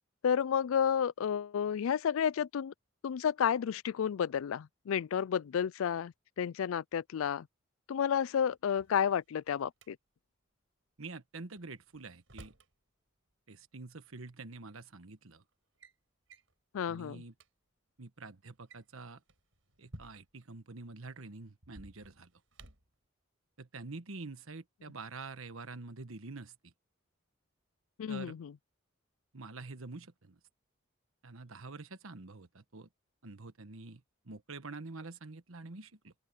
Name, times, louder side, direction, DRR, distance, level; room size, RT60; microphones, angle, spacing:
voice 1, 0.2-2.7 3.0-7.5 7.9-10.0 16.7-17.2 28.0-28.5, left 8 dB, 85° left, 0.4 m, -31 dB
Drawer open or close, 8.5-9.9 11.6-12.7 14.0-14.1 14.9-15.2 15.5-16.0 16.3-16.5 17.0-17.1 17.3-17.5 18.5-20.5 21.6-23.0, right 1 dB, 70° right, 6.5 m, -55 dB
voice 2, 11.0-12.5 13.5-15.4 16.8-17.3 18.0-19.2 19.8-22.3 23.6-26.7 28.1-28.4 29.3-30.4 31.2-32.9 33.2-36.1, right 3 dB, 85° right, 1.3 m, -47 dB
open air
head